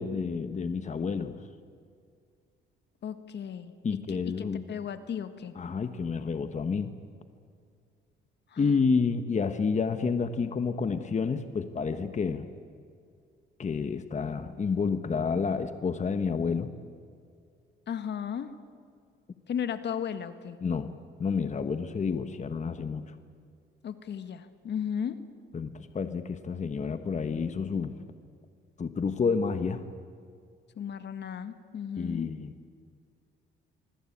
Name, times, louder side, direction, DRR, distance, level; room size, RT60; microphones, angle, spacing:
voice 1, 0.0-1.4 3.8-4.6 5.5-6.9 8.6-12.5 13.6-16.7 20.6-20.9 21.2-23.2 25.5-27.9 28.8-29.8 32.0-32.5, left 5 dB, 35° left, 9 dB, 1.3 m, -29 dB
voice 2, 3.0-3.7 4.3-4.4 4.7-5.5 8.5-8.8 17.9-18.5 19.5-20.6 23.8-25.2 30.8-32.3, left 8 dB, 60° left, 10 dB, 1.7 m, -35 dB
25.0 x 24.0 x 8.7 m, 2.2 s
cardioid pair, 90°, 20 cm